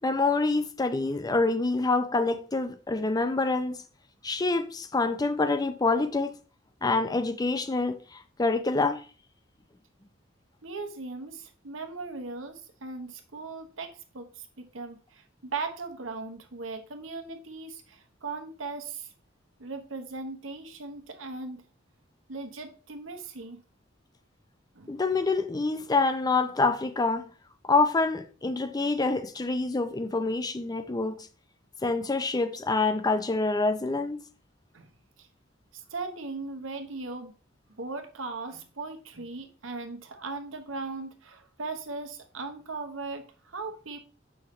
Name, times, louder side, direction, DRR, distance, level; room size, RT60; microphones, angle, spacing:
voice 1, 0.0-3.8 4.2-6.4 6.8-9.0 24.9-27.3 27.6-31.3 31.8-34.2, left 3 dB, 20° left, 0.5 m, -26 dB
voice 2, 10.6-19.1 19.6-21.6 22.3-23.6 24.7-24.9 34.7-34.9 35.2-35.3 35.7-37.3 37.8-44.0, right 3 dB, 80° right, 1.1 m, -38 dB
7.6 x 5.7 x 3.2 m
head